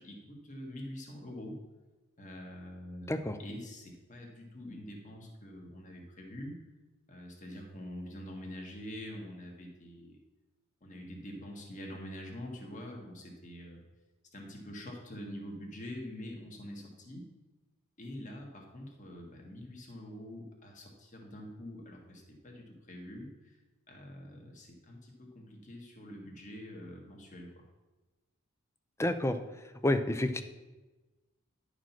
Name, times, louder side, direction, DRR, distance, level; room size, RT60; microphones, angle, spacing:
voice 1, 0.0-1.6 2.2-6.6 7.1-10.2 10.8-13.8 14.3-17.2 18.0-23.3 23.9-27.6, equal, 35° left, 0 dB, 1.7 m, -45 dB
voice 2, 29.0-29.4 29.8-30.4, left 1 dB, 15° left, 9 dB, 0.5 m, -29 dB
10.5 x 5.0 x 5.9 m, 1.2 s
head